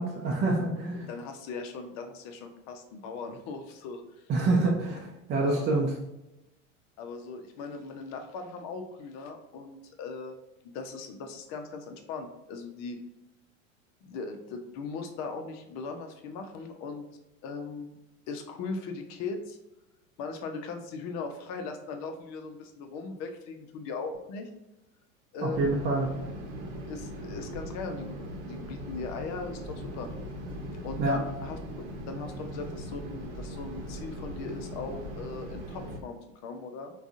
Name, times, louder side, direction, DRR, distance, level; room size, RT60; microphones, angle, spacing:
voice 1, 0.0-1.1 4.3-6.0 25.4-26.1 31.0-31.2, right 2 dB, 30° right, -1 dB, 0.6 m, -26 dB
voice 2, 1.1-4.3 5.4-5.8 7.0-10.4 10.7-13.0 14.0-17.1 17.4-18.0 18.3-19.6 20.2-24.5 25.3-25.7 26.9-30.1 30.8-36.9, left 4 dB, 45° left, 5 dB, 0.6 m, -39 dB
sound 1, 25.5-36.0, equal, 60° right, 0.9 m, -39 dB
3.6 x 2.3 x 2.6 m, 0.93 s
hypercardioid pair, 85°, 39 cm